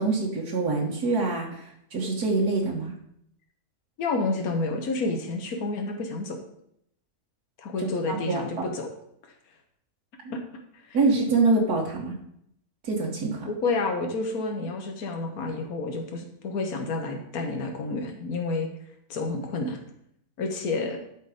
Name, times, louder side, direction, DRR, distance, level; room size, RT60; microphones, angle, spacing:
voice 1, 0.0-2.9 7.8-8.5 10.2-10.3 10.9-12.2 12.8-13.5, right 3 dB, 80° right, -1 dB, 2.0 m, -25 dB
voice 2, 4.0-6.4 7.6-8.9 10.3-10.4 10.9-11.0 13.4-18.7 19.1-19.8 20.4-21.0, left 3 dB, 70° left, 2 dB, 1.7 m, -29 dB
11.5 x 4.6 x 5.1 m, 0.72 s
omnidirectional pair, 1.6 m